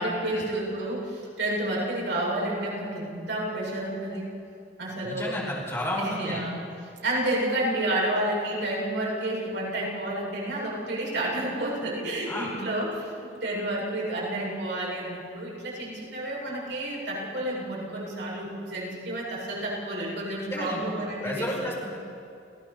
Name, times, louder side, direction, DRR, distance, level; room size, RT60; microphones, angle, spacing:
voice 1, 0.0-4.3 4.8-5.5 6.0-6.6 7.0-21.7, right 1 dB, 70° right, -4 dB, 7.8 m, -30 dB
voice 2, 5.0-6.4 12.3-12.5 20.4-20.9 21.2-22.0, equal, 15° left, -3 dB, 5.2 m, -32 dB
30.0 x 16.5 x 7.0 m, 2.5 s
head